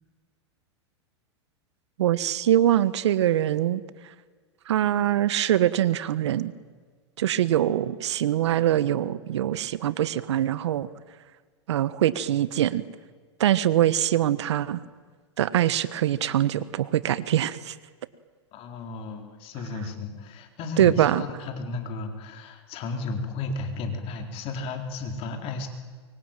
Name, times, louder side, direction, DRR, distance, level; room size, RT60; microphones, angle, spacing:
voice 1, 2.0-3.8 4.7-6.5 7.2-10.9 11.7-12.8 13.4-14.8 15.4-17.7 20.8-21.2, right 12 dB, 75° right, 16 dB, 1.3 m, -23 dB
voice 2, 18.5-25.7, left 3 dB, 40° left, 4 dB, 4.2 m, -34 dB
24.5 x 23.5 x 9.2 m, 1.6 s
hypercardioid pair, 115°, 15 cm